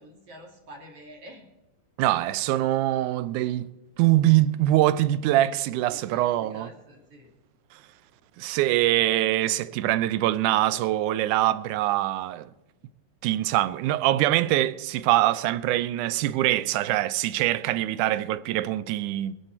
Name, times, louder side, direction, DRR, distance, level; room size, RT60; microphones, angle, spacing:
voice 1, 0.0-1.5 5.9-7.3, right 1 dB, 50° right, 3.0 m, -47 dB
voice 2, 2.0-3.7 4.0-6.7 8.4-12.5 13.2-19.3, right 14 dB, 85° right, 2.1 m, -23 dB
22.0 x 10.0 x 4.4 m
omnidirectional pair, 3.5 m